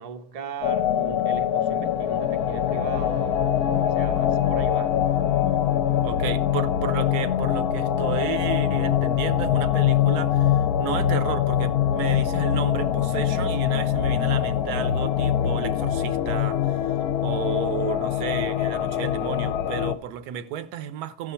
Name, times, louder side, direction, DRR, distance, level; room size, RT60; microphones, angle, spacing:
voice 1, 0.0-3.5 3.9-5.0, right 6 dB, 50° right, 0.4 m, -37 dB
sound 1, 0.6-20.0, left 10 dB, 75° left, 1.0 m, -23 dB
voice 2, 6.0-21.3, right 9 dB, 80° right, 1.2 m, -33 dB
13.5 x 6.4 x 4.3 m
omnidirectional pair, 1.6 m